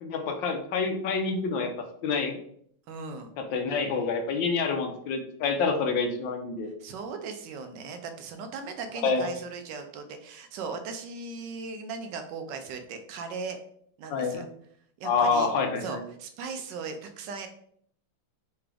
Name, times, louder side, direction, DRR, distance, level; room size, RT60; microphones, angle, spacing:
voice 1, 0.0-1.7 2.0-2.3 3.4-6.7 9.0-9.3 14.1-14.4 15.0-16.0, left 4 dB, 75° left, 4 dB, 1.3 m, -27 dB
voice 2, 2.9-3.3 6.8-13.6 14.0-14.5 15.0-15.5 15.8-17.5, right 4 dB, 75° right, 6 dB, 1.1 m, -38 dB
3.9 x 3.5 x 3.3 m, 0.65 s
omnidirectional pair, 2.1 m